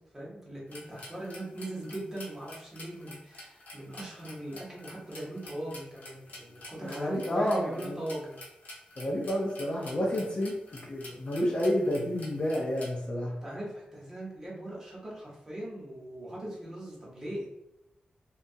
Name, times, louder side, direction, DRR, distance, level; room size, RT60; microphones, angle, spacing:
voice 1, 0.0-8.4 13.4-17.5, right 1 dB, 15° right, -5 dB, 0.8 m, -40 dB
sound 1, 0.7-12.9, left 1 dB, 65° left, 0.7 m, -48 dB
voice 2, 6.8-8.0 9.0-10.6 10.9-13.3, equal, 35° left, -2 dB, 0.4 m, -30 dB
2.8 x 2.2 x 2.6 m, 0.87 s
wide cardioid pair, 180°, 3 cm